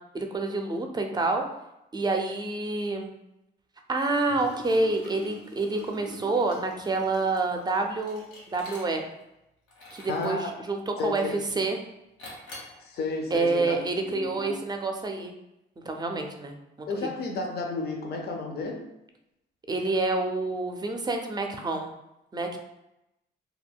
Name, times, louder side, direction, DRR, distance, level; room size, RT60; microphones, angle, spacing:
voice 1, 0.1-1.4 1.9-3.1 3.9-9.0 9.9-11.8 13.3-15.3 15.8-17.1 19.7-21.9 22.3-22.6, right 3 dB, 20° right, 3 dB, 0.4 m, -28 dB
Liquid, 4.2-9.2 9.7-10.4 11.0-11.5 12.2-12.8, equal, 85° left, 1.1 m, -46 dB
voice 2, 10.1-10.5 11.0-11.3 12.8-13.8 14.1-14.6 16.9-18.9, left 3 dB, 55° left, 2 dB, 0.5 m, -32 dB
2.3 x 2.1 x 3.5 m, 0.89 s
cardioid pair, 90°, 20 cm